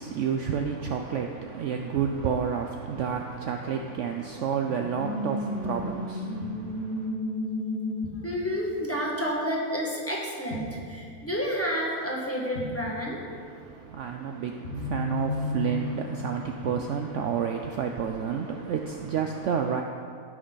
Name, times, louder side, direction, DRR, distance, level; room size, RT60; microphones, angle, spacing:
voice 1, 0.0-7.1 13.4-19.8, right 7 dB, 65° right, 4 dB, 0.8 m, -30 dB
sound 1, 4.6-10.2 10.5-11.2 11.5-11.6 12.5-13.3 14.1-17.5 18.2-18.7, left 1 dB, 45° left, 1.4 m, -34 dB
voice 2, 8.2-13.3, equal, 10° left, -4 dB, 1.5 m, -30 dB
15.5 x 6.3 x 4.0 m, 2.2 s
omnidirectional pair, 1.6 m